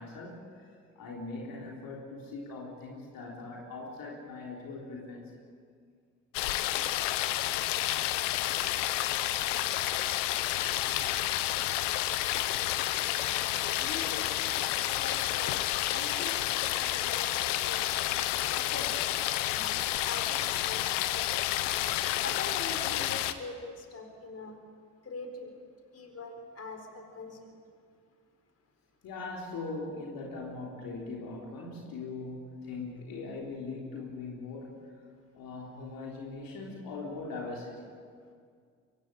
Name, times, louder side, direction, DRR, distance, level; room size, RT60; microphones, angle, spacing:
voice 1, 0.0-5.4 29.0-34.8 35.3-37.9, left 3 dB, 65° left, -2 dB, 3.7 m, -40 dB
sound 1, 6.3-23.3, left 14 dB, 85° left, 0.9 m, -30 dB
voice 2, 13.8-14.3 14.7-17.9 18.5-19.1 19.5-21.5 22.2-24.6 25.0-25.6 25.9-27.5, left 3 dB, 40° left, 5 dB, 4.2 m, -43 dB
24.0 x 16.5 x 9.0 m, 2.1 s
hypercardioid pair, 50°, 37 cm